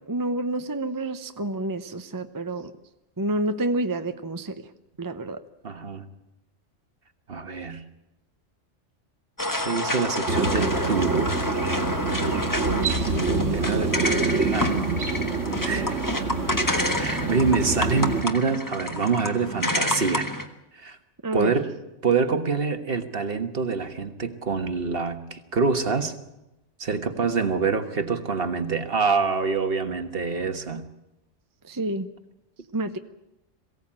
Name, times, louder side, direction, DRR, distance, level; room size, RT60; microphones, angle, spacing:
voice 1, 0.1-2.7 3.2-4.6 5.0-5.4 21.2-21.5 31.7-32.1 32.7-33.0, right 2 dB, 20° right, 8 dB, 0.7 m, -28 dB
voice 2, 5.6-6.0 7.3-7.8 9.6-11.3 13.5-13.9 14.5-15.0 15.6-16.0 17.0-20.3 20.7-21.0 21.3-21.8 22.0-26.1 26.8-30.8, right 4 dB, 50° right, 8 dB, 1.6 m, -26 dB
sound 1, 9.4-20.5, left 1 dB, 15° left, 1.4 m, -29 dB
sound 2, 10.3-18.2, right 4 dB, 80° right, 2.5 m, -26 dB
22.5 x 16.5 x 8.8 m, 0.94 s
omnidirectional pair, 1.3 m